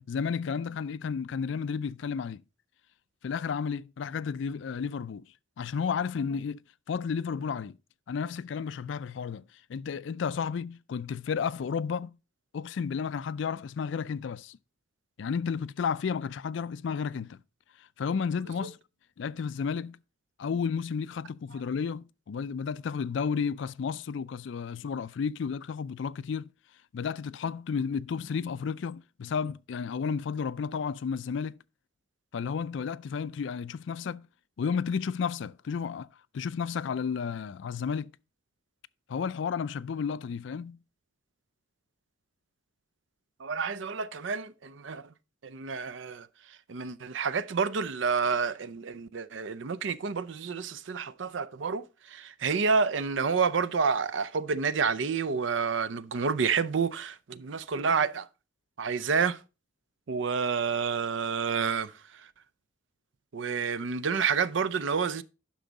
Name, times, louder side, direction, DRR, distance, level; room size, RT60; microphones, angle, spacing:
voice 1, 0.0-2.4 3.2-5.3 5.6-7.8 8.1-9.4 9.7-12.2 12.5-14.6 15.2-17.4 17.8-18.8 19.2-20.0 20.4-26.5 26.9-31.6 32.3-34.3 34.6-36.1 36.3-38.1 39.1-40.8, left 6 dB, 65° left, 0.4 m, -32 dB
voice 2, 43.4-45.1 45.4-46.3 46.7-58.3 58.8-59.4 60.1-61.9 63.3-65.2, right 5 dB, 65° right, 0.5 m, -29 dB
10.5 x 6.2 x 4.0 m
head